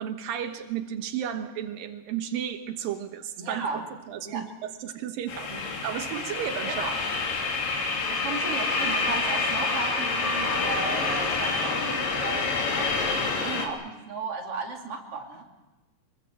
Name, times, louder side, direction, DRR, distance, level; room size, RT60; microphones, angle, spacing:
voice 1, 0.0-6.9, right 9 dB, 90° right, 7 dB, 3.0 m, -33 dB
voice 2, 3.4-3.8 4.3-4.4 5.5-5.8 6.6-7.0 8.1-15.4, right 4 dB, 45° right, 0 dB, 3.8 m, -35 dB
sound 1, 5.3-13.7, left 4 dB, 80° left, 4.6 m, -27 dB
25.0 x 22.5 x 7.7 m, 1.1 s
omnidirectional pair, 3.9 m